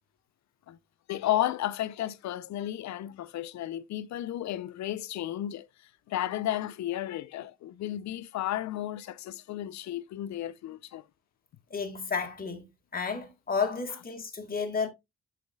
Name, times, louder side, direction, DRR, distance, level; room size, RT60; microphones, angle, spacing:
voice 1, 1.1-5.7 6.1-11.0, left 13 dB, 65° left, 0.6 m, -33 dB
voice 2, 11.7-12.6 12.9-14.9, left 5 dB, 30° left, 1.8 m, -31 dB
11.5 x 4.1 x 2.2 m
cardioid pair, 90°, 30 cm